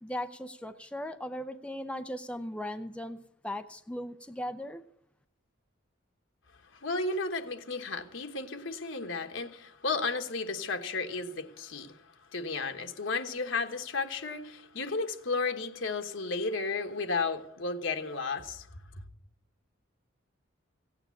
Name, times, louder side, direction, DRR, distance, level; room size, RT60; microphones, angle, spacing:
voice 1, 0.0-3.2 3.4-4.8, left 1 dB, 5° left, 0.5 m, -38 dB
voice 2, 6.8-12.0 12.3-18.7 18.9-19.0, left 3 dB, 70° left, 1.3 m, -33 dB
16.0 x 8.9 x 8.3 m
head